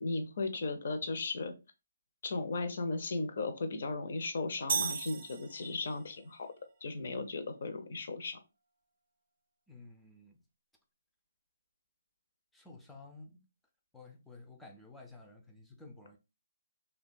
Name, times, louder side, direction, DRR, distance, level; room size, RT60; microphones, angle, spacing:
voice 1, 0.0-1.5 2.2-6.5 6.8-8.4, left 3 dB, 60° left, 0.6 m, -36 dB
sound 1, 4.7-6.1, right 6 dB, 50° right, 0.5 m, -35 dB
voice 2, 9.7-10.4 12.5-13.4 13.9-16.2, left 3 dB, 5° left, 0.4 m, -53 dB
2.7 x 2.2 x 2.5 m
hypercardioid pair, 155°, 0 cm